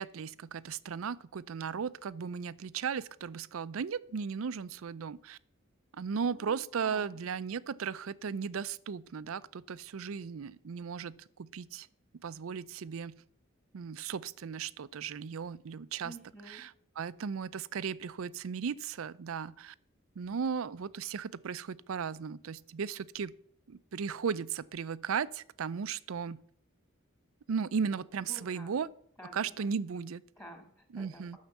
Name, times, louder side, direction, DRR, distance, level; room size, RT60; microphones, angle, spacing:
voice 1, 0.0-5.4 5.9-11.9 12.2-13.2 13.7-16.1 16.5-19.7 20.2-23.3 23.7-26.4 27.5-28.9 29.3-30.2 30.9-31.4, right 6 dB, 75° right, 0.5 m, -36 dB
voice 2, 6.3-7.2 16.0-16.6 27.9-28.7 29.2-29.7 30.4-31.4, equal, 15° left, 2.1 m, -51 dB
10.5 x 6.4 x 7.2 m
head